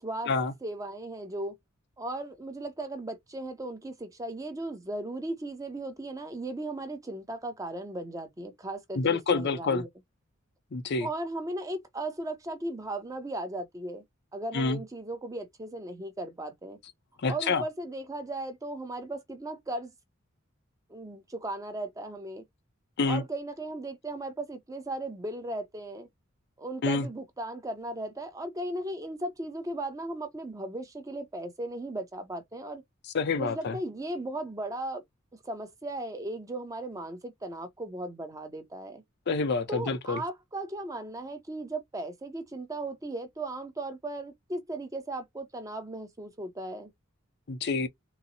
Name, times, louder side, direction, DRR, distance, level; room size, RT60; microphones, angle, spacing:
voice 1, 0.0-0.3 0.6-1.6 2.0-9.9 11.0-14.0 14.3-16.8 17.3-19.9 20.9-22.4 23.1-26.1 26.6-32.8 33.4-35.0 35.3-39.0 39.7-46.9, right 2 dB, 15° right, 0.6 m, -37 dB
voice 2, 8.9-9.8 10.7-11.1 14.5-14.8 17.2-17.6 23.0-23.2 26.8-27.1 33.1-33.8 39.3-40.2 47.5-47.9, left 4 dB, 55° left, 0.5 m, -27 dB
3.8 x 2.0 x 2.6 m
head